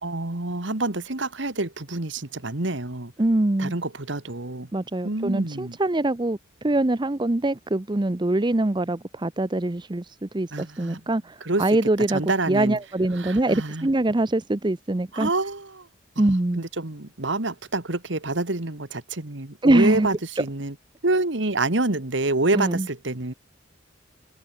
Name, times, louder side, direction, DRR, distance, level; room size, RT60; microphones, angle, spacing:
voice 1, 0.0-3.1 3.6-4.7 5.0-5.8 10.5-11.0 11.4-11.6 12.1-12.8 13.2-13.9 15.1-15.9 16.6-20.7 21.0-23.3, right 2 dB, 65° right, 1.9 m, -27 dB
voice 2, 3.2-3.7 4.7-6.4 6.6-15.3 16.2-16.6 19.6-20.1 22.5-22.9, right 2 dB, 25° right, 0.6 m, -23 dB
head